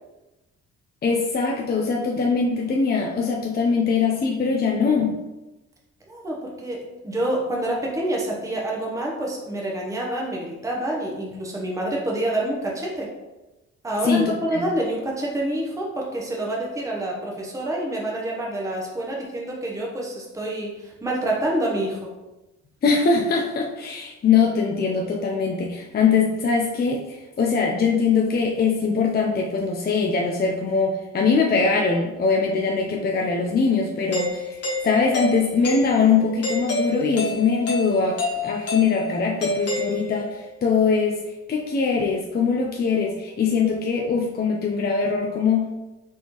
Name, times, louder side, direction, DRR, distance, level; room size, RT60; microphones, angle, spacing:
voice 1, 1.0-5.1 14.0-14.6 22.8-34.6 34.8-41.2 41.5-45.7, left 5 dB, 30° left, 0 dB, 0.5 m, -22 dB
voice 2, 6.1-13.1 13.8-22.1, right 1 dB, 10° right, -2 dB, 0.9 m, -27 dB
Doorbell, 34.1-40.4, left 1 dB, 50° left, 1.1 m, -29 dB
4.4 x 3.5 x 3.0 m, 1.0 s
cardioid pair, 90°, 30 cm